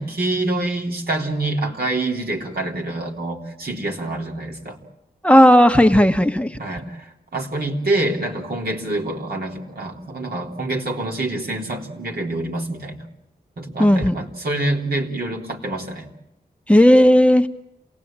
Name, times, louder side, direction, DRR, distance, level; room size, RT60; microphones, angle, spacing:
voice 1, 0.0-4.8 6.6-13.1 13.6-16.1, right 2 dB, 70° right, 0 dB, 3.5 m, -26 dB
voice 2, 5.2-6.6 13.8-14.1 16.7-17.5, equal, 5° left, 7 dB, 1.2 m, -13 dB
27.5 x 18.0 x 8.8 m, 0.89 s
cardioid pair, 50°, 16 cm